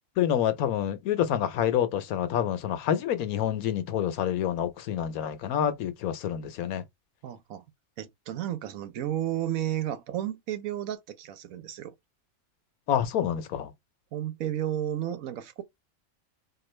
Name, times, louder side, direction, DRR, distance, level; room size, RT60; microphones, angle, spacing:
voice 1, 0.2-6.8 12.9-13.7, left 10 dB, 85° left, 1.2 m, -27 dB
voice 2, 7.2-7.6 8.0-11.9 14.1-15.6, right 11 dB, 75° right, 1.1 m, -32 dB
4.4 x 2.3 x 3.1 m
omnidirectional pair, 1.5 m